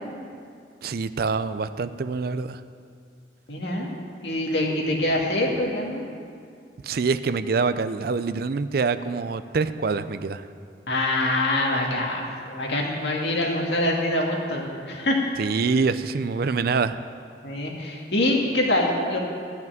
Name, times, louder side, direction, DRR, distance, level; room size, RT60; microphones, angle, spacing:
voice 1, 0.8-2.6 6.8-10.5 15.4-17.0, right 4 dB, 55° right, 13 dB, 0.4 m, -25 dB
voice 2, 3.5-3.9 4.2-6.0 10.9-15.2 17.4-19.2, left 1 dB, 75° left, -1 dB, 2.0 m, -25 dB
13.0 x 5.9 x 9.1 m, 2.3 s
head